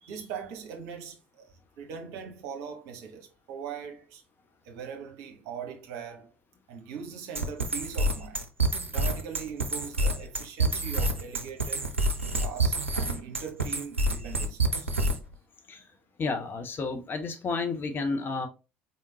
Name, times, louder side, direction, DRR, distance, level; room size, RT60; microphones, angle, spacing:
voice 1, 0.0-4.2 4.6-6.3 6.7-8.5 8.9-11.9 12.4-15.2, right 7 dB, 55° right, 1.0 m, -41 dB
sound 1, 7.4-15.3, right 2 dB, 85° right, 0.5 m, -27 dB
voice 2, 16.2-18.5, left 4 dB, 30° left, 0.9 m, -31 dB
4.2 x 3.6 x 2.7 m
figure-of-eight pair, 60°, 7 cm